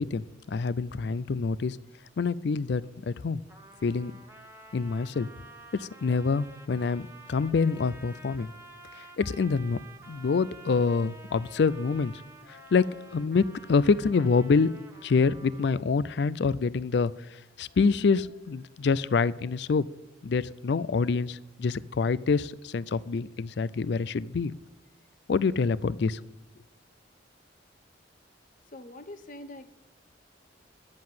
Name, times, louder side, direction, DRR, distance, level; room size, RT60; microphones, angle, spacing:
voice 1, 0.0-1.8 2.2-3.4 3.8-4.1 4.7-5.3 5.7-8.5 9.0-12.1 12.5-14.7 15.0-19.9 20.2-24.5 25.3-26.2, left 4 dB, 60° left, 19 dB, 0.4 m, -26 dB
Trumpet, 3.5-15.9, right 2 dB, 15° right, 1.2 m, -50 dB
voice 2, 28.7-29.7, left 1 dB, 45° left, 11 dB, 0.9 m, -44 dB
10.5 x 7.5 x 9.3 m, 0.94 s
head